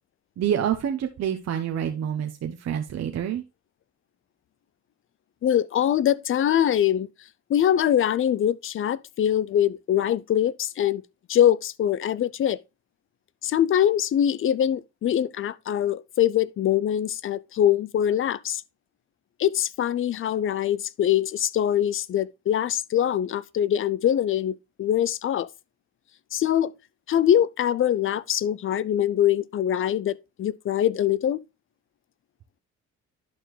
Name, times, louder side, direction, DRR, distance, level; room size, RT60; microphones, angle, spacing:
voice 1, 0.4-3.4, right 9 dB, 60° right, 0.9 m, -27 dB
voice 2, 5.4-7.1 7.5-11.0 11.3-12.6 13.4-18.6 19.4-25.5 26.3-26.7 27.1-31.4, left 10 dB, 45° left, 0.4 m, -23 dB
11.0 x 4.3 x 3.2 m
cardioid pair, 90°, 30 cm